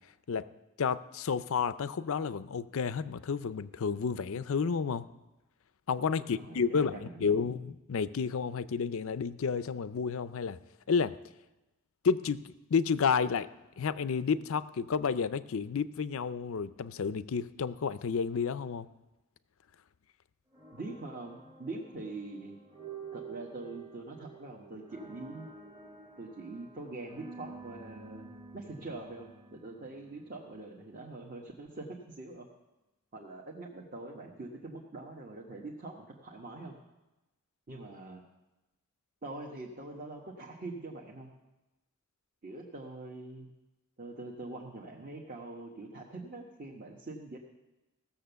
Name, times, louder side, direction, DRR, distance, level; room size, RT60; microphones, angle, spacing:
voice 1, 0.8-5.1 5.9-10.6 10.9-11.1 12.0-13.5 13.8-18.9, left 6 dB, 60° left, 15 dB, 0.5 m, -31 dB
voice 2, 6.2-7.5 20.7-22.6 23.1-25.5 26.2-32.5 33.1-36.7 37.7-38.2 39.2-41.3 42.4-43.5 44.0-47.4, right 2 dB, 40° right, -2 dB, 1.2 m, -44 dB
sound 1, 20.5-30.6, right 4 dB, 15° right, 1.1 m, -50 dB
16.0 x 7.0 x 6.8 m, 1.0 s
head